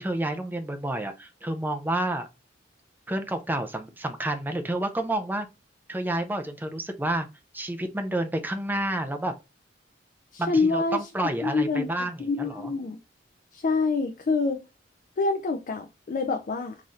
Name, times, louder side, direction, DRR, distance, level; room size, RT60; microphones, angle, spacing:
voice 1, 0.0-2.3 3.1-5.5 5.9-7.3 7.5-9.3 10.4-12.7, right 1 dB, 10° right, 0.5 m, -29 dB
voice 2, 10.3-11.1 11.4-11.9 12.2-13.0 13.5-14.6 15.2-16.8, left 4 dB, 45° left, 0.4 m, -26 dB
3.9 x 2.6 x 3.0 m
head